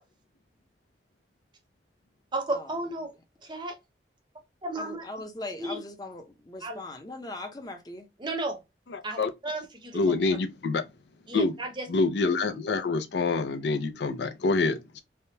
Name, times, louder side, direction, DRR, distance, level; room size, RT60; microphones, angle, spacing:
voice 1, 2.3-3.1 3.4-3.8 4.6-5.1 5.6-5.8 6.6-6.8 8.2-8.6 9.0-9.2 9.4-10.0 11.3-11.9, right 2 dB, 25° right, 0.7 m, -33 dB
voice 2, 4.8-8.1, left 2 dB, 20° left, 0.6 m, -40 dB
voice 3, 8.9-9.3 9.9-10.8 11.3-11.6 11.9-15.0, left 3 dB, 75° left, 0.5 m, -26 dB
3.4 x 2.2 x 2.7 m
head